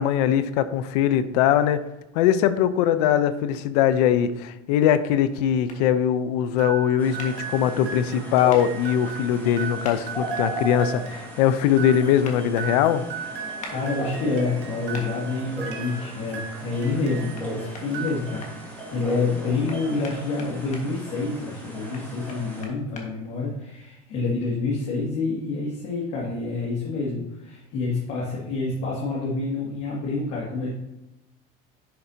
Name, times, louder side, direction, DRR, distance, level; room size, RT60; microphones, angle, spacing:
voice 1, 0.0-1.8 2.1-13.0, left 10 dB, 80° left, 13 dB, 0.7 m, -21 dB
sound 1, 5.7-5.8 7.2-7.3 8.5-8.6 9.8-10.0 12.2-12.4 13.6-13.8 14.9-15.1 17.3-17.5 17.7-18.5 19.7-20.8 21.9-23.1, left 3 dB, 35° left, 1.5 m, -40 dB
sound 2, 6.6-17.4 17.8-18.7, right 6 dB, 60° right, 1.4 m, -37 dB
sound 3, 7.0-22.6, right 1 dB, 10° left, 2.1 m, -37 dB
voice 2, 13.7-30.8, left 3 dB, 60° left, -5 dB, 2.1 m, -28 dB
10.5 x 4.9 x 2.8 m, 0.94 s
supercardioid pair, 125°, 20 cm